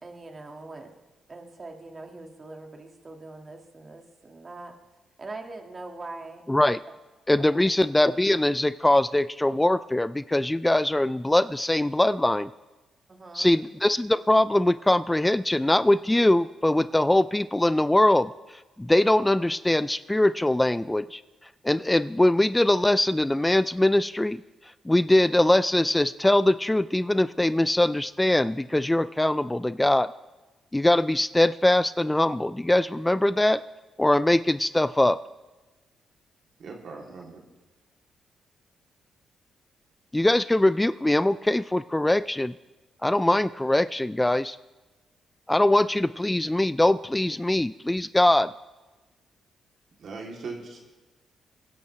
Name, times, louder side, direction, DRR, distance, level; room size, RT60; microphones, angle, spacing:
voice 1, 0.0-0.9 1.3-4.7 5.2-6.4 7.4-7.7 13.1-13.5, right 2 dB, 35° right, 3 dB, 2.1 m, -42 dB
voice 2, 6.5-6.8 7.3-12.5 13.3-18.3 18.8-21.2 21.6-24.4 24.9-30.1 30.7-33.6 34.0-35.2 40.1-42.5 43.0-44.6 45.5-48.5, left 1 dB, 10° left, 15 dB, 0.3 m, -22 dB
voice 3, 36.6-37.4 50.0-50.9, right 4 dB, 65° right, 0 dB, 3.1 m, -39 dB
24.0 x 10.5 x 3.3 m, 1.2 s
cardioid pair, 70°, 0 cm